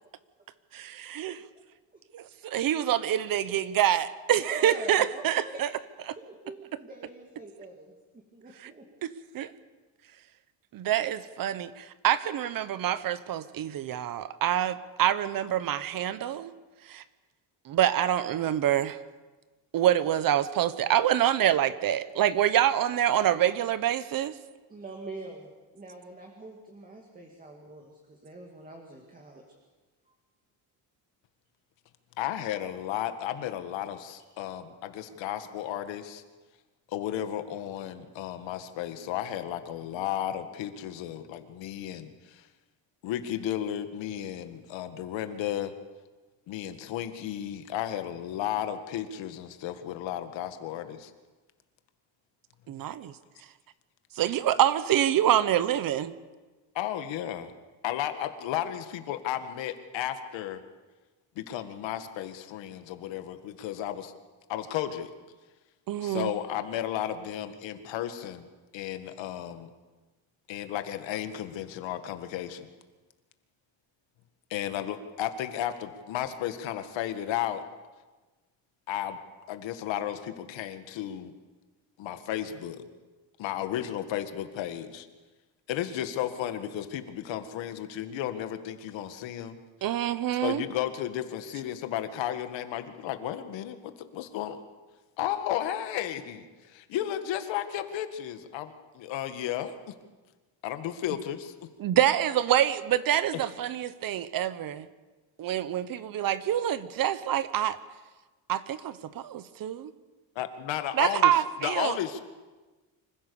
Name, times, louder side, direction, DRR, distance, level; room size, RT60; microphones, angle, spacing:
voice 1, 0.7-1.4 2.1-5.7 8.6-8.7 9.0-9.5 10.7-16.5 16.9-17.0 17.7-19.0 19.7-24.3 52.7-53.1 54.2-56.1 65.9-66.3 89.8-90.6 101.8-104.9 105.4-107.8 108.5-109.0 109.6-109.8 111.0-112.0, right 11 dB, 50° right, 15 dB, 0.9 m, -26 dB
voice 2, 4.4-5.7 6.2-9.2 24.7-29.4, right 2 dB, 20° right, 1 dB, 2.2 m, -44 dB
voice 3, 32.2-36.2 36.9-42.5 43.0-45.7 46.5-51.1 56.8-57.5 57.8-60.6 61.4-64.1 64.5-65.1 66.0-68.5 68.7-69.7 70.5-72.7 74.5-77.6 78.9-79.2 79.5-81.3 82.0-82.8 83.4-85.1 85.7-89.6 90.4-94.6 95.2-99.9 100.6-101.5 110.4-111.3 111.6-112.2, left 11 dB, 75° left, 9 dB, 1.8 m, -33 dB
25.5 x 15.5 x 7.0 m, 1.2 s
cardioid pair, 160°, 45 cm